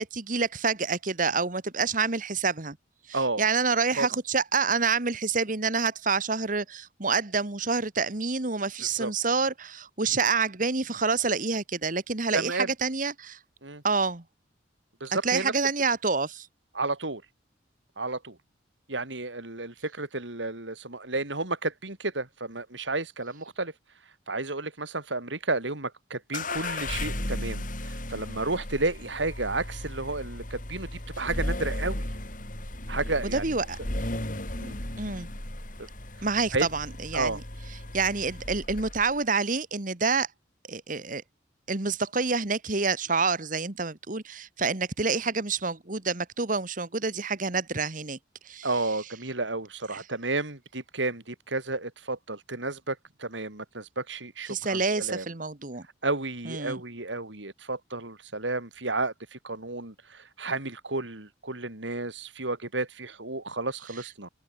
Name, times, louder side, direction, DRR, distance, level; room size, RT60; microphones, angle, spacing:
voice 1, 0.0-2.8 3.1-13.4 13.8-14.2 15.2-16.5 33.3-33.8 35.0-35.3 36.2-37.4 37.9-40.3 40.7-41.2 41.7-48.2 48.4-48.7 49.9-50.0 54.5-55.9 56.4-56.8, right 4 dB, 45° right, 1.6 m, -27 dB
voice 2, 3.1-3.4 4.0-4.1 8.9-9.1 12.3-12.7 13.6-13.8 15.0-15.5 16.7-17.2 18.0-18.4 18.9-23.7 24.3-30.9 31.2-32.0 32.9-33.4 34.6-34.7 35.8-35.9 36.5-36.7 37.1-37.4 48.6-55.3 56.0-64.3, right 2 dB, 80° right, 4.2 m, -32 dB
sound 1, 26.3-39.2, left 1 dB, 45° left, 5.6 m, -35 dB
open air
head